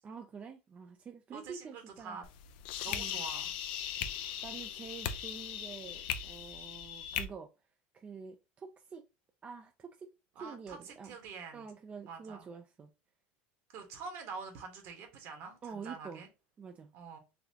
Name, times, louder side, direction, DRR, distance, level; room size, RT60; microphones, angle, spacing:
voice 1, 0.0-2.2 2.9-3.2 4.4-7.5 7.9-9.0 9.4-10.1 10.4-11.2 11.5-12.9 15.6-16.2 16.6-16.9, right 5 dB, 25° right, 0.4 m, -47 dB
voice 2, 1.3-2.2 2.8-3.5 10.3-11.7 12.0-12.5 13.7-16.3 16.9-17.2, right 5 dB, 55° right, 1.3 m, -46 dB
sound 1, 2.2-7.2, left 10 dB, 70° left, 0.5 m, -38 dB
4.0 x 2.8 x 2.8 m
supercardioid pair, 120°, 5 cm